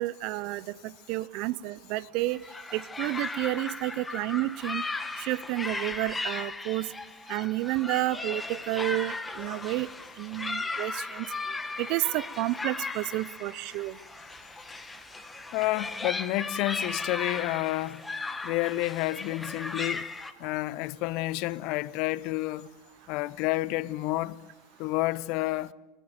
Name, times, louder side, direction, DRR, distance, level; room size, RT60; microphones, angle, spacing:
voice 1, 0.0-2.4 2.7-4.8 5.2-6.9 7.3-9.9 10.2-11.3 11.8-13.9, right 18 dB, 55° right, 0.7 m, -30 dB
sound 1, 2.3-20.3, left 3 dB, 15° left, 1.7 m, -37 dB
voice 2, 15.5-18.0 18.4-20.1 20.4-22.7 23.1-24.4 24.8-25.7, left 18 dB, 55° left, 0.8 m, -30 dB
28.5 x 14.5 x 9.0 m
hypercardioid pair, 85°, 0 cm